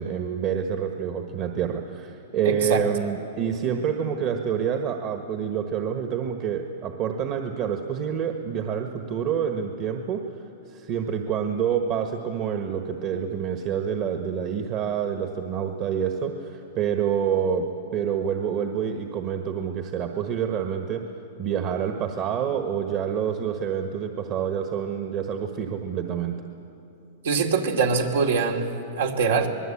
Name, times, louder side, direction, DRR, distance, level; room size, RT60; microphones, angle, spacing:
voice 1, 0.0-10.2 10.7-17.7 17.9-21.0 21.4-26.4, right 8 dB, 40° right, 5 dB, 1.4 m, -27 dB
voice 2, 2.4-2.8 27.2-28.7 29.0-29.5, right 5 dB, 80° right, 2 dB, 2.6 m, -23 dB
26.0 x 20.0 x 8.7 m, 2.9 s
hypercardioid pair, 140°, 0 cm